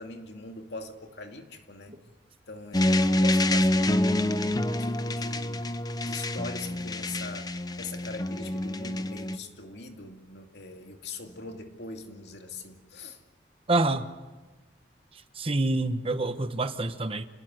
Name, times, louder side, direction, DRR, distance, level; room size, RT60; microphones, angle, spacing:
voice 1, 0.0-2.0 2.5-4.4 4.7-5.7 6.0-13.2, left 3 dB, 70° left, 4 dB, 2.5 m, -42 dB
sound 1, 2.7-9.4, left 1 dB, 20° left, 0.8 m, -27 dB
voice 2, 13.7-14.0 15.4-17.3, right 2 dB, 30° right, 10 dB, 1.1 m, -26 dB
28.5 x 19.5 x 8.1 m, 1.3 s
head